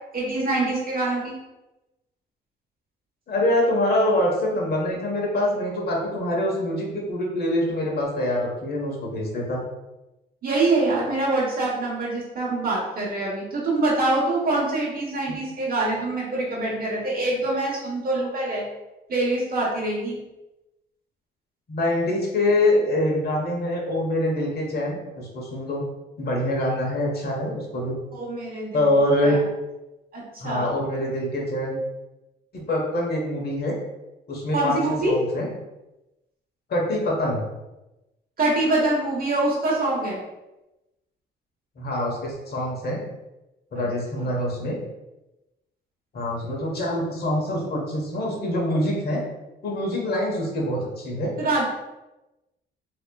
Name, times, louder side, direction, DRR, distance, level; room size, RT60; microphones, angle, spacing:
voice 1, 0.1-1.3 10.4-18.6 19.1-20.2 28.1-28.8 29.2-29.5 30.1-30.7 34.5-35.2 38.4-40.2 43.7-43.9 44.1-44.2 51.4-51.6, right 2 dB, 50° right, -4 dB, 1.1 m, -25 dB
voice 2, 3.3-9.6 21.7-25.8 26.2-27.9 28.7-29.4 30.4-31.8 32.5-33.8 34.3-34.8 35.1-35.5 36.7-37.4 41.8-43.0 43.7-44.8 46.1-49.2 49.6-51.3, left 1 dB, 50° left, -2 dB, 1.2 m, -25 dB
4.1 x 2.9 x 2.3 m, 0.99 s
cardioid pair, 90°, 20 cm